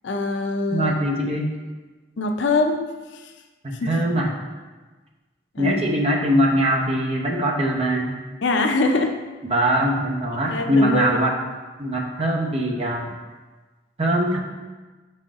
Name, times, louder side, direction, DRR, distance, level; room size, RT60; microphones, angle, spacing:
voice 1, 0.0-0.9 2.2-2.8 5.5-5.8 8.4-9.1 10.5-11.2, left 3 dB, 85° left, 5 dB, 0.5 m, -23 dB
voice 2, 0.7-1.5 3.6-4.3 5.6-8.2 9.4-11.4 11.8-13.1 14.0-14.4, equal, 35° right, -1 dB, 0.8 m, -22 dB
6.1 x 4.3 x 3.6 m, 1.3 s
head